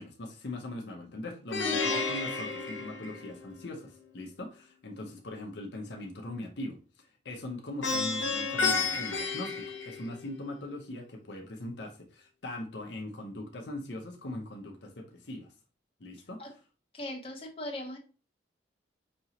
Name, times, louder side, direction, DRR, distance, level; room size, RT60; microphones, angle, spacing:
voice 1, 0.0-15.5 16.0-16.4, left 1 dB, 65° left, 1 dB, 0.7 m, -41 dB
Plucked string instrument, 1.5-3.7 7.8-10.4, left 4 dB, 85° left, 1.0 m, -31 dB
voice 2, 16.9-18.0, left 1 dB, 30° left, 0 dB, 1.0 m, -39 dB
5.3 x 2.9 x 2.8 m, 0.36 s
head